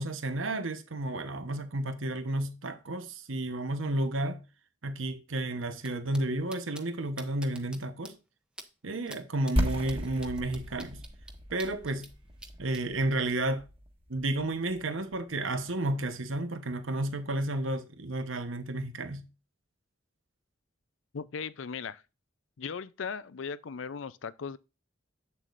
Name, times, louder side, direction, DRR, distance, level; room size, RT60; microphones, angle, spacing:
voice 1, 0.0-4.4 4.8-8.2 8.8-11.0 11.5-12.1 12.6-13.6 14.1-19.3, right 2 dB, 85° right, 1.1 m, -32 dB
sound 1, 5.8-5.9 6.1-6.2 6.5-6.8 7.2-7.8 8.0-8.1 8.6-8.7 9.1-9.2 9.5-12.1 12.4-12.8, right 1 dB, 5° right, 0.9 m, -46 dB
sound 2, 9.6-15.3, equal, 30° right, 1.5 m, -35 dB
voice 2, 21.1-22.0 22.6-24.6, left 6 dB, 75° left, 0.5 m, -37 dB
8.3 x 7.4 x 2.5 m
head